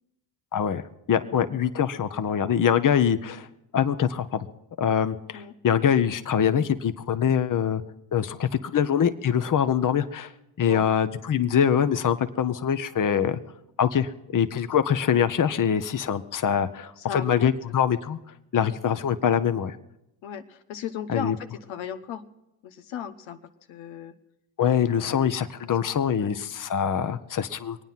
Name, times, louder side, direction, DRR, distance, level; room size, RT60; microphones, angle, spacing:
voice 1, 0.5-3.5 3.7-4.5 4.8-7.8 8.1-10.3 10.6-13.4 13.8-18.2 18.5-19.8 21.1-21.4 24.6-27.8, left 8 dB, 45° left, 10 dB, 1.0 m, -24 dB
voice 2, 17.0-17.8 18.5-18.7 20.2-22.2 22.6-23.4 23.7-24.1 24.9-25.4 25.8-25.9 26.2-26.3, left 8 dB, 85° left, 7 dB, 1.0 m, -36 dB
23.0 x 9.2 x 5.8 m, 0.86 s
supercardioid pair, 65°, 46 cm